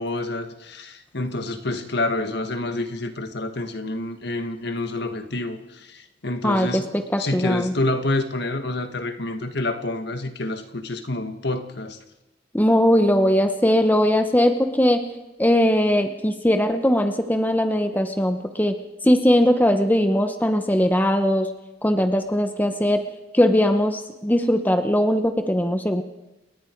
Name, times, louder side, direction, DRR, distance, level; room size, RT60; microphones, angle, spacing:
voice 1, 0.0-6.9 7.2-12.0, left 2 dB, 60° left, 7 dB, 1.7 m, -28 dB
voice 2, 6.4-7.7 12.5-15.1 15.4-21.5 21.8-23.0 23.3-26.0, equal, 10° left, 7 dB, 1.0 m, -20 dB
30.0 x 18.5 x 4.7 m, 1.0 s
head